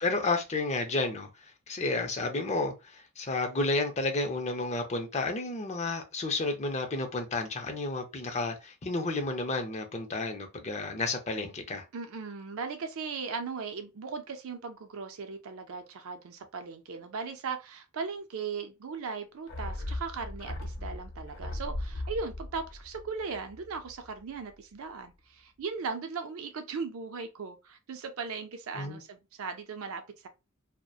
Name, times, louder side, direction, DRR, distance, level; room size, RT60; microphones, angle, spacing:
voice 1, 0.0-1.3 1.7-11.8 28.8-29.0, left 3 dB, 35° left, 0.5 m, -31 dB
voice 2, 11.9-30.3, right 5 dB, 80° right, 0.5 m, -38 dB
sound 1, 19.5-24.1 24.4-24.5, left 1 dB, 85° left, 0.8 m, -38 dB
2.7 x 2.1 x 2.3 m
head